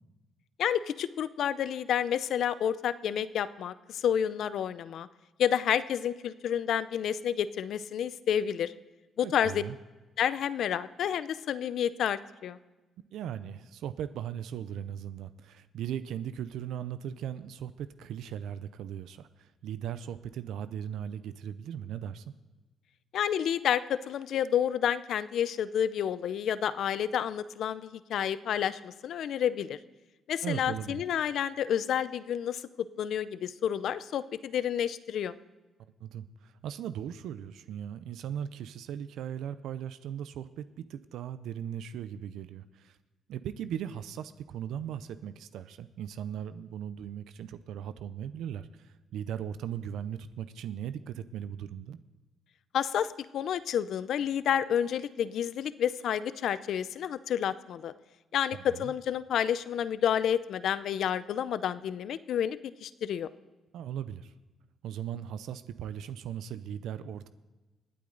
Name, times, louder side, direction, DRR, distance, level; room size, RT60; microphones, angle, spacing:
voice 1, 0.6-5.1 5.4-8.7 9.2-9.6 10.2-12.6 23.1-29.8 30.3-35.3 52.7-57.9 58.3-63.3, left 9 dB, 70° left, 15 dB, 0.6 m, -30 dB
voice 2, 9.2-9.8 13.1-22.3 30.4-31.0 36.0-43.0 43.3-52.0 58.5-58.9 63.7-64.3 64.8-67.3, right 9 dB, 80° right, 13 dB, 0.5 m, -38 dB
25.5 x 8.6 x 3.9 m, 1.2 s
cardioid pair, 90°, 0 cm